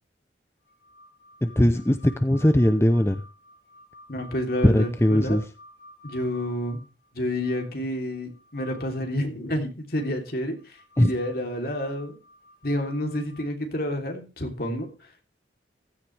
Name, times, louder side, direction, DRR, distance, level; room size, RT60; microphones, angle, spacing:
sound 1, 0.7-9.2 9.9-13.5, left 1 dB, 75° left, 5.3 m, -51 dB
voice 1, 1.4-3.2 4.6-5.4 11.0-11.1, left 1 dB, 15° left, 9 dB, 0.6 m, -20 dB
voice 2, 4.1-5.4 6.0-6.8 7.1-12.2 12.6-15.2, left 1 dB, 55° left, 3 dB, 3.2 m, -29 dB
15.5 x 13.0 x 3.4 m, 0.30 s
head